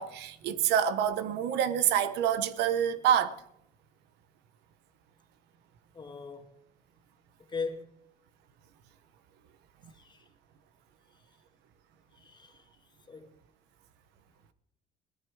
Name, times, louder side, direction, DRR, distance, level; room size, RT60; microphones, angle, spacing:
voice 1, 0.0-3.4, right 9 dB, 85° right, 1.0 m, -27 dB
voice 2, 5.9-6.6 7.5-7.9 9.9-10.3 11.1-11.3 12.1-13.3, left 4 dB, 25° left, 2.1 m, -40 dB
18.0 x 13.0 x 4.8 m
cardioid pair, 110°, 17 cm